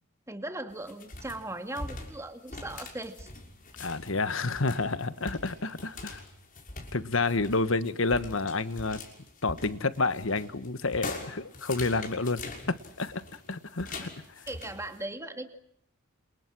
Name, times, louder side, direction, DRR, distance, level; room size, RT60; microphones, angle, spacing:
voice 1, 0.3-3.3 14.0-14.1 14.5-15.6, right 1 dB, 15° right, 6 dB, 2.4 m, -38 dB
sound 1, 0.7-15.0, left 3 dB, 40° left, 6.2 m, -44 dB
voice 2, 3.8-6.2 6.9-9.0 9.4-13.2 13.5-14.1, left 3 dB, 65° left, 13 dB, 1.4 m, -29 dB
29.0 x 28.5 x 6.2 m, 0.72 s
head